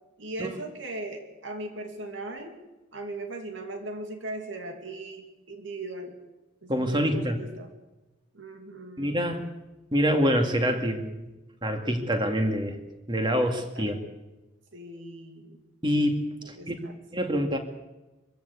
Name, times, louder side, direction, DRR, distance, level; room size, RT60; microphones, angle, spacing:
voice 1, 0.2-2.5 2.9-6.2 6.6-7.7 8.3-9.2 13.8-13.9 14.7-15.6 16.4-17.0, right 2 dB, 70° right, 4 dB, 2.7 m, -38 dB
voice 2, 6.7-7.4 9.0-9.5 9.9-11.3 11.6-12.8 13.1-14.0 15.8-16.8 17.1-17.6, equal, 25° right, 5 dB, 2.3 m, -26 dB
24.0 x 15.5 x 8.3 m, 1.1 s
head